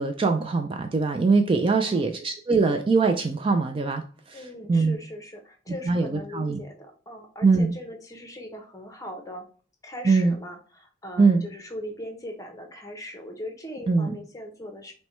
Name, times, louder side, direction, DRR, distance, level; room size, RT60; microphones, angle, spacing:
voice 1, 0.0-4.0 4.3-4.4 4.7-5.0 5.9-6.6 7.4-7.7 10.0-10.4 11.2-11.4 13.9-14.1, right 4 dB, 25° right, 6 dB, 0.3 m, -22 dB
voice 2, 1.7-2.0 4.3-9.4 9.8-14.9, left 1 dB, 15° left, 3 dB, 0.7 m, -40 dB
5.8 x 2.2 x 3.1 m, 0.41 s
head